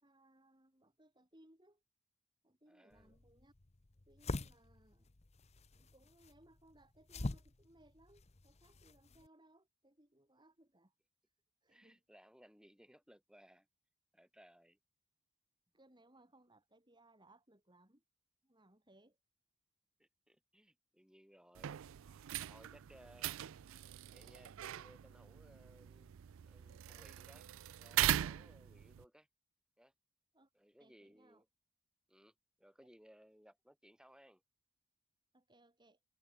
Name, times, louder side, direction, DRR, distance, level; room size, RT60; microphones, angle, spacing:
voice 1, 0.0-1.8 2.4-3.5 4.1-5.2 5.7-10.9 11.2-11.3 11.6-12.0 15.7-18.0 18.4-19.2 30.3-30.5 30.8-31.4 32.8-32.9 35.3-36.0, right 1 dB, 20° right, 3.2 m, -67 dB
voice 2, 2.7-3.1 11.7-13.7 14.1-14.8 20.0-21.8 22.4-23.3 24.1-26.1 26.4-27.5 27.7-29.3 29.8-29.9 30.5-31.5 32.1-34.4, equal, 5° right, 6.1 m, -63 dB
sound 1, 2.9-9.3, left 2 dB, 30° left, 0.8 m, -46 dB
sound 2, 21.5-29.0, right 12 dB, 60° right, 0.4 m, -40 dB
head